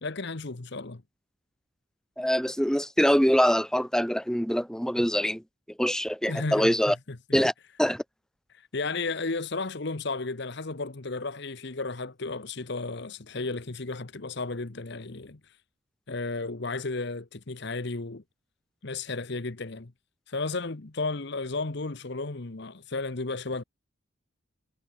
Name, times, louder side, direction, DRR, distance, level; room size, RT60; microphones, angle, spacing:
voice 1, 0.0-1.0 6.3-7.4 8.5-15.4 16.1-18.2 18.8-19.9 20.3-23.6, left 3 dB, 55° left, 1.0 m, -33 dB
voice 2, 2.2-5.4 5.8-7.0 7.3-7.5 7.8-8.0, equal, 5° left, 2.1 m, -24 dB
head